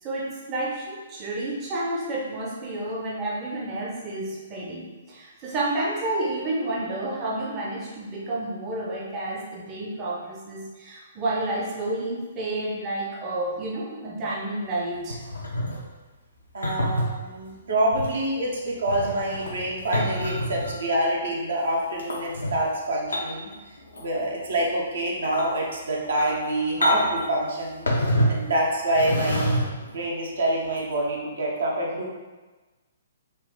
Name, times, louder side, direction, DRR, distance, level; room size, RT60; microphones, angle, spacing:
voice 1, 0.0-15.2, right 2 dB, 25° right, -4 dB, 0.7 m, -30 dB
sound 1, 15.1-15.8 16.6-17.1 17.9-18.1 18.7-20.8 22.0-22.5 23.1-23.5 23.8-24.2 24.6-24.7 25.2-25.5 26.0-26.4 26.8-27.2 27.9-28.5 28.9-29.9 30.8-30.9, equal, 80° left, 0.8 m, -27 dB
voice 2, 16.5-23.5 24.0-27.9 28.3-29.6 29.8-32.1, right 1 dB, 70° right, -2 dB, 0.9 m, -26 dB
4.0 x 2.4 x 3.7 m, 1.3 s
figure-of-eight pair, 125°, 0 cm